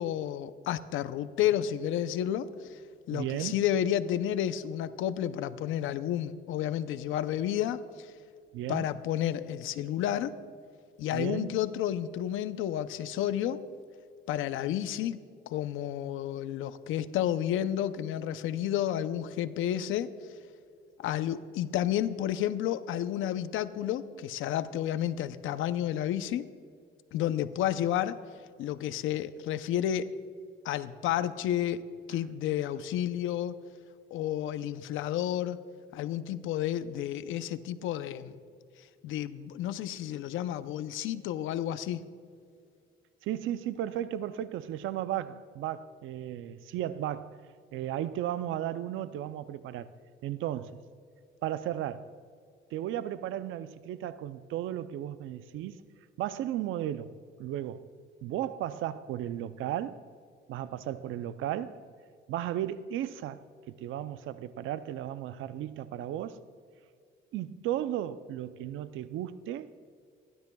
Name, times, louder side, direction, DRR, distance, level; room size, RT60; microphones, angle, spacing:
voice 1, 0.0-2.8 3.1-8.1 8.7-10.4 11.0-13.6 14.3-15.2 15.5-20.1 21.0-26.5 27.1-28.2 28.6-30.1 30.6-31.8 32.1-33.5 34.1-35.6 35.9-38.4 39.0-42.0, left 11 dB, 90° left, 0.6 m, -31 dB
voice 2, 3.1-3.6 8.5-8.9 11.1-11.6 43.2-47.4 47.7-49.9 50.2-50.8 51.4-52.1 52.7-55.8 56.2-57.9 58.2-60.0 60.5-61.8 62.3-66.4 67.3-69.7, right 12 dB, 85° right, 0.5 m, -35 dB
29.0 x 12.0 x 2.3 m
cardioid pair, 90°, 20 cm